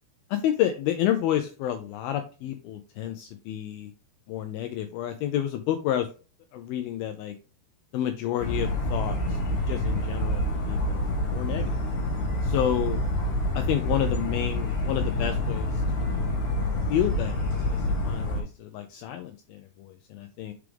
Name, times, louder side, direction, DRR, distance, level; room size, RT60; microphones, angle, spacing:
voice 1, 0.3-3.9 4.3-6.1 6.5-7.4 7.9-9.4 9.7-11.8 12.4-13.0 13.5-16.5 16.9-20.5, left 11 dB, 85° left, 7 dB, 2.1 m, -30 dB
sound 1, 8.4-18.4, left 1 dB, 60° left, 2.9 m, -27 dB
6.1 x 4.8 x 3.4 m, 0.35 s
omnidirectional pair, 4.8 m